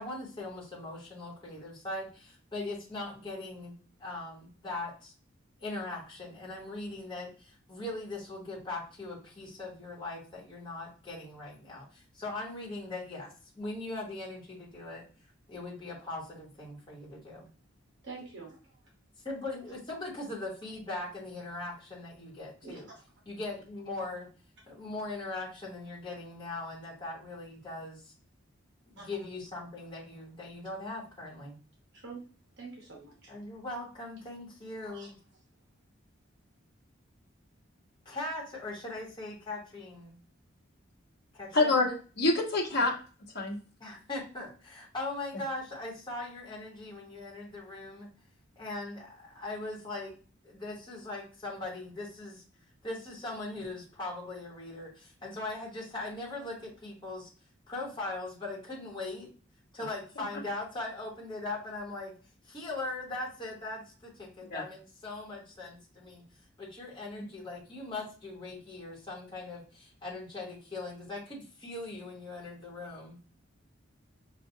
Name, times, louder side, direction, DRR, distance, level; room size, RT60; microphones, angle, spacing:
voice 1, 0.0-3.7 4.0-5.1 5.6-15.0 15.5-17.5 19.2-22.9 23.3-24.3 24.7-28.1 28.9-31.6 33.3-35.1 38.0-40.2 41.3-41.8 43.8-48.1 48.6-50.2 50.4-52.4 52.8-57.3 57.7-59.3 59.7-62.1 62.5-66.2 66.6-73.2, left 2 dB, 25° left, -4 dB, 1.2 m, -40 dB
voice 2, 18.0-18.7 22.6-22.8 29.0-29.1 31.9-32.2 32.6-33.3 34.8-35.1, right 4 dB, 60° right, -1 dB, 1.0 m, -46 dB
voice 3, 41.5-43.0 43.3-43.6 64.5-64.6, left 3 dB, 55° left, -1 dB, 1.2 m, -26 dB
5.6 x 2.4 x 2.7 m, 0.37 s
head